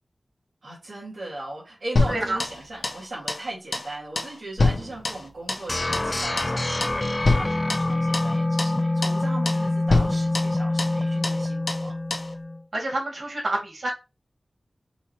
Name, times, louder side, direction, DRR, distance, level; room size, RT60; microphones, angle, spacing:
voice 1, 0.6-12.0, right 2 dB, 85° right, 2.0 m, -38 dB
sound 1, 2.0-3.0 3.3-3.5 3.7-3.9 4.2-5.7 5.9-6.1 6.4-6.6 6.8-7.0 7.2-8.3 8.6-8.8 9.0-9.2 9.5-9.6 9.9-11.0 11.2-11.4 11.7-11.9 12.1-12.3, left 3 dB, 80° left, 1.1 m, -26 dB
voice 2, 2.1-2.4 7.4-7.6 9.5-9.6 12.7-13.9, right 2 dB, 65° right, 2.5 m, -28 dB
sound 2, 5.7-12.6, left 2 dB, 25° left, 0.3 m, -26 dB
5.4 x 3.0 x 3.1 m
wide cardioid pair, 85°, 0 cm